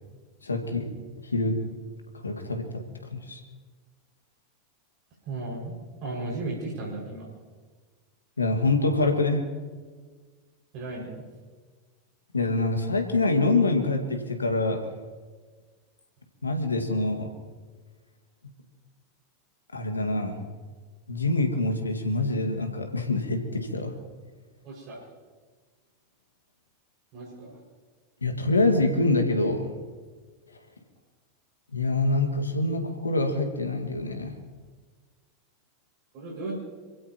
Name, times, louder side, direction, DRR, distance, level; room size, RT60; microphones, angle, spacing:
voice 1, 0.4-0.9 1.3-1.6 2.2-2.7 3.1-3.4 8.4-9.5 12.3-14.8 16.4-17.3 19.7-20.4 21.1-23.9 28.2-29.7 31.7-34.3, left 2 dB, 85° left, 5 dB, 1.9 m, -25 dB
voice 2, 5.3-5.7 6.0-7.3 10.7-11.2 24.6-25.0 27.1-27.6 36.1-36.6, right 2 dB, 45° right, -3 dB, 6.0 m, -35 dB
27.0 x 16.5 x 3.0 m, 1.4 s
figure-of-eight pair, 90°, 0 cm